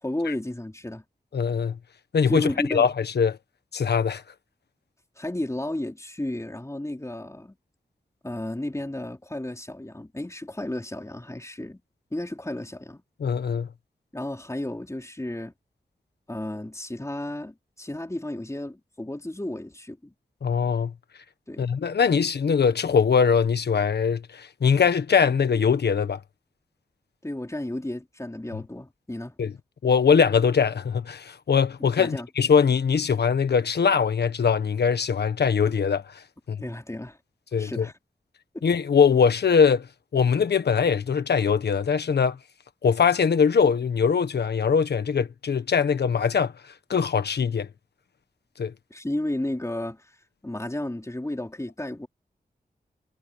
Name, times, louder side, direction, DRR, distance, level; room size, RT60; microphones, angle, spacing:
voice 1, 0.0-1.0 2.3-2.9 5.2-7.6 8.2-11.8 12.1-13.0 14.1-15.5 16.3-20.1 21.5-21.7 27.2-29.3 31.8-32.3 36.6-37.2 37.6-37.9 48.9-50.1 50.4-52.1, left 1 dB, 20° left, 4.1 m, -33 dB
voice 2, 1.3-1.8 2.1-3.4 3.7-4.2 13.2-13.7 20.4-20.9 21.6-26.2 29.4-29.5 29.8-36.0 36.5-36.6 37.5-37.9 38.6-39.9 40.1-42.4 42.8-46.5 46.9-47.7 48.6-48.7, left 6 dB, 90° left, 1.4 m, -22 dB
cardioid pair, 45°, 17 cm